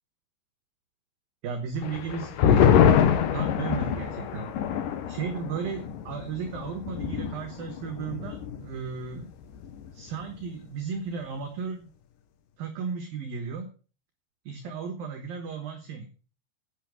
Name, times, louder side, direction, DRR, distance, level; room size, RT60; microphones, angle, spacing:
voice 1, 1.4-3.0 3.3-4.5 5.1-9.3 9.9-11.9 12.6-13.7 14.5-16.1, right 6 dB, 65° right, 5 dB, 2.5 m, -35 dB
sound 1, 1.8-8.8 9.0-9.1 9.5-10.0, left 8 dB, 85° left, 1.9 m, -25 dB
10.5 x 9.1 x 6.3 m, 0.38 s
omnidirectional pair, 5.5 m